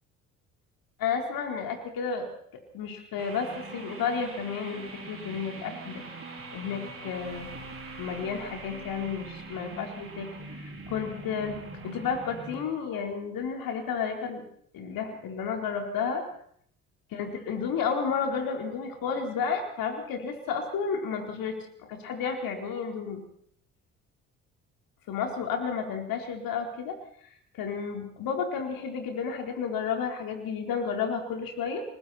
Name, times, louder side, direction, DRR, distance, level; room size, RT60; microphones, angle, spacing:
voice 1, 1.0-2.3 2.7-6.0 6.5-7.5 8.0-11.6 11.8-14.4 14.7-16.2 17.1-23.2 25.1-27.0 27.5-31.8, left 6 dB, 60° left, 4 dB, 4.3 m, -32 dB
sound 1, 3.2-12.6, right 2 dB, 35° right, 4.8 m, -42 dB
29.5 x 20.0 x 4.4 m, 0.63 s
figure-of-eight pair, 50°, 40 cm